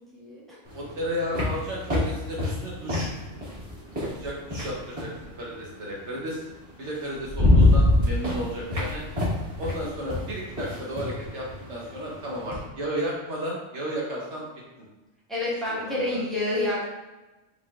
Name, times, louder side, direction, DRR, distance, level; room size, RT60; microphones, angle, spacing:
voice 1, 0.1-0.4 15.3-16.8, left 2 dB, ahead, -8 dB, 1.3 m, -28 dB
sound 1, 0.7-5.2 6.5-6.6 7.0-12.7, left 2 dB, 25° right, 1.4 m, -25 dB
voice 2, 0.7-3.1 4.1-6.4 6.8-9.0 9.6-14.5 15.7-16.2, equal, 65° right, -3 dB, 1.1 m, -33 dB
5.2 x 3.7 x 2.4 m, 1.1 s
omnidirectional pair, 1.3 m